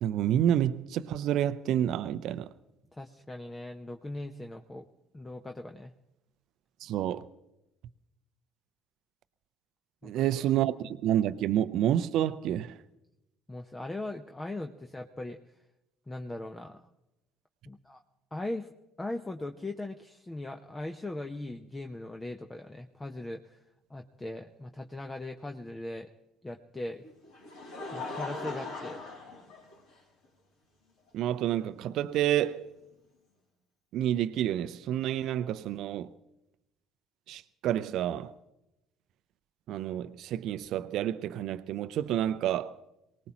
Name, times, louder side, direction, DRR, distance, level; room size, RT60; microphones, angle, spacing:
voice 1, 0.0-2.5 6.8-7.3 10.0-12.7 31.1-32.6 33.9-36.1 37.3-38.3 39.7-42.7, right 11 dB, 60° right, 0.6 m, -29 dB
voice 2, 2.9-4.9 5.1-5.9 10.0-10.3 13.5-15.4 16.1-16.8 17.7-18.0 18.3-18.7 19.0-23.6 23.9-26.1 26.4-27.0 27.9-29.0, left 2 dB, 20° left, 0.9 m, -39 dB
Laughter, 27.0-30.2 31.1-31.2 32.6-32.7, left 3 dB, 75° left, 5.0 m, -40 dB
23.5 x 18.5 x 3.0 m
hypercardioid pair, 60°, 0 cm